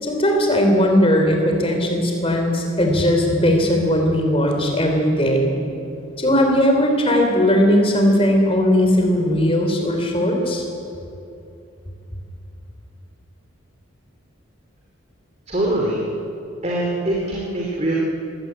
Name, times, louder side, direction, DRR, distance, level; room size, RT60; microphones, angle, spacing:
voice 1, 0.0-5.6 6.2-10.6, equal, 25° left, 2 dB, 3.5 m, -18 dB
voice 2, 15.5-16.0 16.6-17.9, right 1 dB, 30° right, -3 dB, 3.1 m, -23 dB
22.0 x 17.0 x 8.8 m, 2.7 s
head